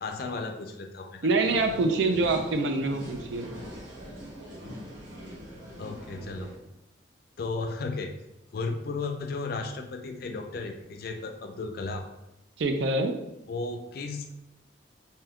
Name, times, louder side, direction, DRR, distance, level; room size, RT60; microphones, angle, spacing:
voice 1, 0.0-1.3 5.8-6.5 7.4-8.1 8.5-12.1 13.5-14.3, left 3 dB, 50° left, 5 dB, 0.4 m, -34 dB
voice 2, 1.2-3.5 12.6-13.1, right 3 dB, 65° right, 5 dB, 0.4 m, -25 dB
sound 1, 1.4-6.6, equal, 85° right, 1.1 m, -42 dB
2.7 x 2.2 x 3.5 m, 0.90 s
head